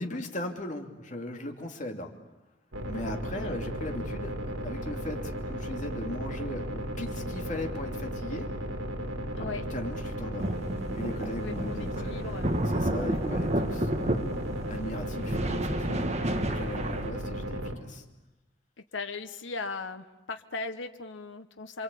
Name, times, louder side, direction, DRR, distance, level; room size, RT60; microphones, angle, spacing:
voice 1, 0.0-2.1 2.8-4.4 4.6-8.6 9.4-10.5 10.9-12.3 12.7-13.9 14.7-16.1 16.4-18.0, left 1 dB, 40° left, 3 dB, 2.7 m, -38 dB
sound 1, 2.7-17.7, equal, 90° right, 3.3 m, -35 dB
sound 2, 10.4-17.1, right 1 dB, 35° right, 1.6 m, -31 dB
voice 2, 11.4-12.5 12.9-13.1 18.9-21.8, left 3 dB, 70° left, 7 dB, 1.2 m, -38 dB
28.5 x 24.5 x 8.5 m, 1.0 s
head